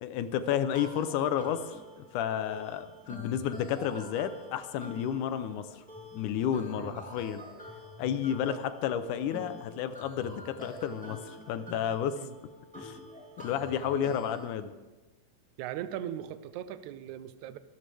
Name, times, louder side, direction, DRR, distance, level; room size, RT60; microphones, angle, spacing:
voice 1, 0.0-5.8 6.2-7.4 8.0-12.2 12.8-13.0 13.4-14.7, left 9 dB, 75° left, 11 dB, 2.0 m, -31 dB
sound 1, 0.7-14.4, left 1 dB, 5° left, 2.1 m, -47 dB
voice 2, 15.6-17.6, right 11 dB, 75° right, 12 dB, 1.8 m, -39 dB
23.5 x 14.0 x 3.4 m, 1.1 s
omnidirectional pair, 4.1 m